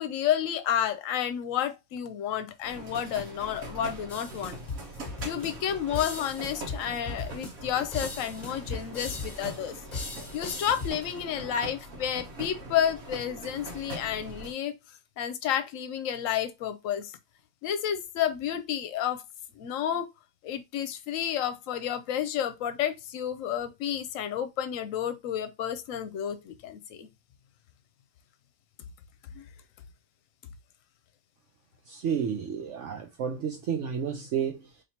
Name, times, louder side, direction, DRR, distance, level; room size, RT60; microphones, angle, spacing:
voice 1, 0.0-4.6 5.2-9.8 10.3-14.8 15.2-17.2 17.6-19.2 19.6-20.1 20.4-27.1 29.3-29.5, left 9 dB, 75° left, 1.0 m, -31 dB
sound 1, 2.6-14.5, right 1 dB, 90° right, 1.4 m, -42 dB
sound 2, 4.1-10.9, left 3 dB, 35° left, 1.1 m, -38 dB
voice 2, 31.9-34.8, right 7 dB, 70° right, 0.9 m, -31 dB
4.2 x 3.2 x 2.8 m
omnidirectional pair, 1.4 m